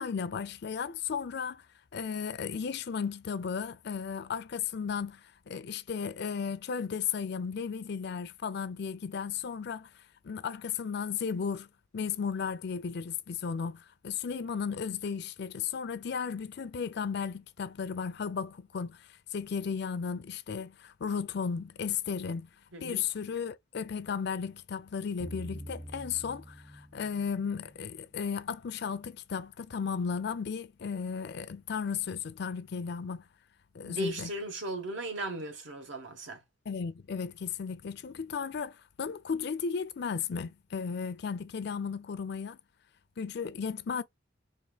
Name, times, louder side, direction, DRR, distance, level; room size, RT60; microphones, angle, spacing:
voice 1, 0.0-1.6 1.9-9.9 10.2-11.7 11.9-22.5 22.8-33.2 33.7-34.3 36.7-42.6 43.2-44.0, left 6 dB, 60° left, 0.5 m, -35 dB
voice 2, 22.7-23.0 33.8-36.4, right 1 dB, 80° right, 1.4 m, -37 dB
sound 1, 25.2-28.3, equal, 5° right, 0.4 m, -46 dB
4.4 x 2.5 x 2.3 m
head